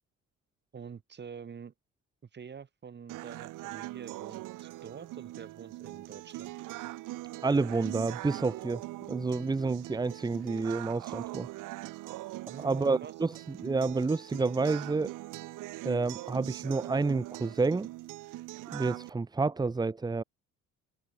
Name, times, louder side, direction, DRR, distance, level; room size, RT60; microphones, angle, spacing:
voice 1, 0.7-1.7 2.3-6.5 12.5-13.1, right 6 dB, 35° right, 4.2 m, -46 dB
sound 1, 3.1-19.1, right 18 dB, 80° right, 1.1 m, -42 dB
voice 2, 7.4-8.8 9.1-11.5 12.6-15.1 15.8-17.9 18.7-20.2, right 3 dB, 15° right, 0.8 m, -29 dB
cardioid pair, 125°, 31 cm